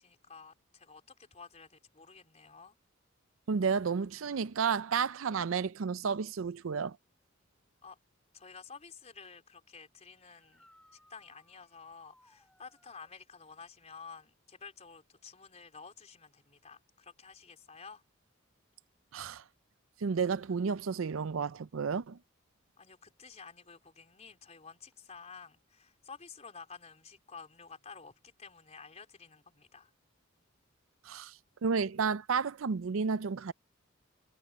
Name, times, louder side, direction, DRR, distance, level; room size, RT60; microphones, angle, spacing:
voice 1, 0.0-2.8 7.8-8.0 8.3-18.0 22.8-29.9, left 5 dB, 35° left, 4.3 m, -51 dB
voice 2, 3.5-7.0 19.1-19.4 20.0-22.2 31.1-31.3 31.6-33.5, right 5 dB, 70° right, 0.5 m, -31 dB
sound 1, 10.2-13.1 16.5-16.6 18.6-18.7 24.9-25.0, left 1 dB, 5° left, 3.5 m, -65 dB
head